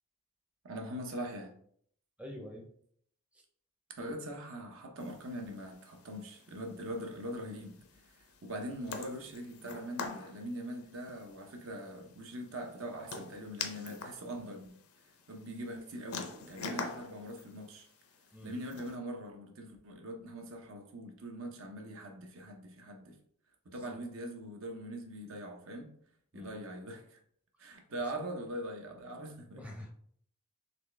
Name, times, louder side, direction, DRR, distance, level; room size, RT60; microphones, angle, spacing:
voice 1, 0.6-1.6 4.0-8.1 8.4-14.8 15.3-17.9 18.4-23.2 23.6-25.9 26.3-27.2 27.6-29.6, right 1 dB, 70° right, 0.8 m, -42 dB
voice 2, 2.2-2.7 18.3-18.5 26.3-26.5 29.5-29.9, left 1 dB, 5° right, 0.6 m, -45 dB
sound 1, 5.0-18.9, left 4 dB, 80° left, 0.6 m, -46 dB
4.2 x 3.1 x 3.3 m
head